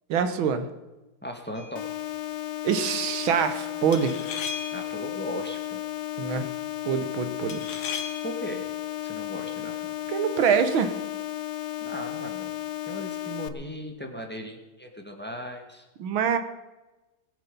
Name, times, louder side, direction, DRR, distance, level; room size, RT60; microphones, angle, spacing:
voice 1, 0.1-0.7 2.6-4.2 6.2-6.5 6.9-7.6 10.1-10.9 16.0-16.4, right 7 dB, 75° right, 10 dB, 1.9 m, -25 dB
voice 2, 1.2-1.8 4.7-5.8 8.2-8.6 9.0-9.9 11.8-12.6 12.9-15.8, equal, 5° left, 3 dB, 1.5 m, -37 dB
sound 1, 1.5-1.9 3.9-5.0 7.5-8.4, left 7 dB, 85° left, 2.3 m, -36 dB
sound 2, 1.8-13.5, left 13 dB, 65° left, 1.2 m, -34 dB
20.5 x 8.6 x 5.4 m, 1.1 s
omnidirectional pair, 2.3 m